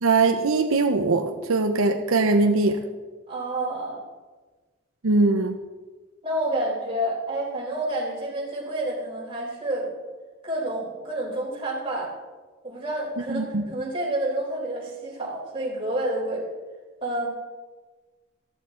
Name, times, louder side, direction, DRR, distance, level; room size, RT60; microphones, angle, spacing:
voice 1, 0.0-2.8 5.0-5.6 13.3-13.7, right 3 dB, 85° right, 6 dB, 0.8 m, -21 dB
voice 2, 3.3-4.0 6.2-9.9 10.4-12.1 12.6-16.5 17.0-17.3, right 1 dB, 25° right, -3 dB, 4.0 m, -29 dB
14.5 x 14.0 x 3.9 m, 1.3 s
head